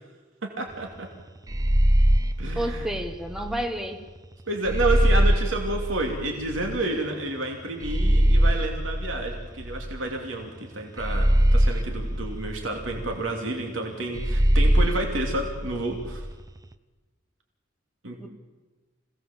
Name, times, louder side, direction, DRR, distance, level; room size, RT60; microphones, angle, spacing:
voice 1, 0.4-1.1 2.4-2.9 4.5-16.2 18.0-18.2, right 2 dB, 80° right, 1 dB, 2.7 m, -30 dB
sound 1, 1.5-3.6 4.7-6.8 7.8-10.2 11.0-13.2 14.2-16.3, equal, 20° right, 0.7 m, -22 dB
voice 2, 2.5-4.0 18.2-18.3, right 1 dB, ahead, 5 dB, 1.4 m, -30 dB
26.0 x 18.0 x 7.4 m, 1.3 s
head